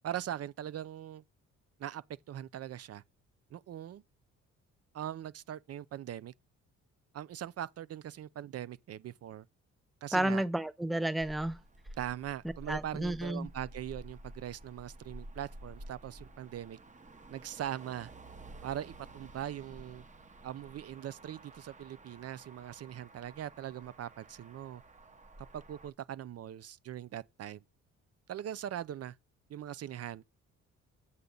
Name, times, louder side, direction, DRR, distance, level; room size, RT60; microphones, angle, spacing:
voice 1, 0.0-1.2 1.8-3.0 3.5-4.0 4.9-6.3 7.1-9.5 10.0-10.4 12.0-16.8 17.3-18.1 18.6-20.0 20.4-24.8 25.5-27.6 28.3-29.2 29.5-30.2, right 11 dB, 55° right, 0.5 m, -41 dB
voice 2, 10.1-11.6 12.7-13.5, right 1 dB, ahead, 0.6 m, -31 dB
Motor vehicle (road), 11.2-25.9, right 1 dB, 25° right, 1.0 m, -51 dB
8.2 x 6.8 x 3.8 m
cardioid pair, 90°, 30 cm